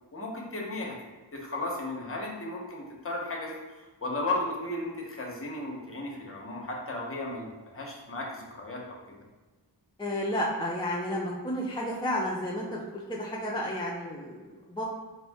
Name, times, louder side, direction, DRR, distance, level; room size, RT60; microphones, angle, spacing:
voice 1, 0.1-0.9 1.3-3.5 4.0-9.2, left 2 dB, 30° left, -1 dB, 0.9 m, -35 dB
voice 2, 10.0-14.8, equal, 10° left, -4 dB, 0.5 m, -32 dB
4.1 x 2.6 x 3.5 m, 1.3 s
wide cardioid pair, 75°, 42 cm